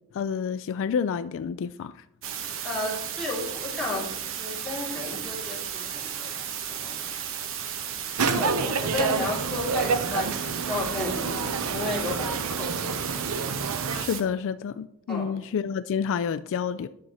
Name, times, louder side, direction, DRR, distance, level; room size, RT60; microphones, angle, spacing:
voice 1, 0.1-1.9 13.9-16.9, left 7 dB, 60° left, 0.3 m, -29 dB
sound 1, 2.2-14.2, right 8 dB, 60° right, 1.0 m, -34 dB
voice 2, 2.6-4.1 4.4-6.3 6.7-7.0 8.2-13.0 15.1-15.3, left 2 dB, ahead, 3.4 m, -33 dB
sound 2, 8.2-14.1, right 5 dB, 80° right, 0.6 m, -29 dB
11.0 x 6.3 x 4.2 m
head